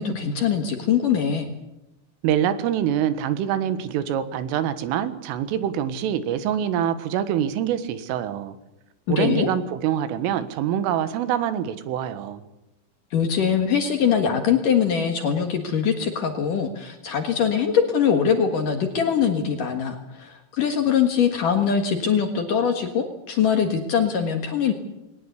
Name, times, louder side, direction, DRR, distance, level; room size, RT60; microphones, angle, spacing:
voice 1, 0.0-1.5 9.1-9.5 13.1-24.7, left 7 dB, 60° left, 5 dB, 2.5 m, -22 dB
voice 2, 2.2-8.6 9.1-12.4, right 10 dB, 85° right, 12 dB, 4.1 m, -25 dB
21.5 x 19.5 x 8.3 m, 0.91 s
omnidirectional pair, 5.6 m